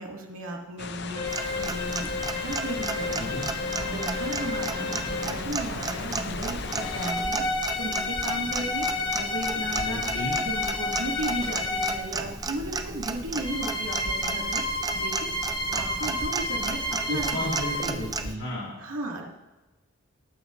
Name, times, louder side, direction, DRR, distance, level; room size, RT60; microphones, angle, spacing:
voice 1, 0.0-3.4 3.8-7.4 7.8-14.6 14.9-15.3 15.7-17.5 17.9-18.0 18.8-19.2, right 2 dB, 90° right, -1 dB, 2.2 m, -35 dB
sound 1, 0.8-7.1, left 5 dB, 55° left, 0.6 m, -37 dB
sound 2, 1.1-5.5 6.6-12.1 13.3-17.9, left 2 dB, 20° left, 1.2 m, -31 dB
Clock, 1.3-18.4, right 4 dB, 20° right, 0.5 m, -34 dB
voice 2, 3.1-3.5 9.7-10.4 17.1-18.7, equal, 70° left, -7 dB, 3.2 m, -34 dB
19.0 x 8.7 x 2.6 m, 1.1 s
head